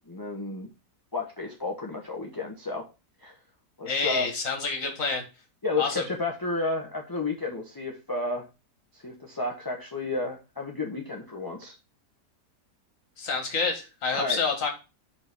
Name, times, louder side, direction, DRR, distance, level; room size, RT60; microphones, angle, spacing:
voice 1, 0.1-0.7 1.1-2.8 3.2-3.4 3.8-4.3 5.6-8.4 8.9-11.8 14.1-14.4, left 3 dB, 20° left, 0 dB, 0.8 m, -32 dB
voice 2, 3.9-5.2 5.8-6.0 13.2-14.7, left 4 dB, 50° left, 4 dB, 1.9 m, -28 dB
5.7 x 4.1 x 5.5 m, 0.30 s
omnidirectional pair, 1.8 m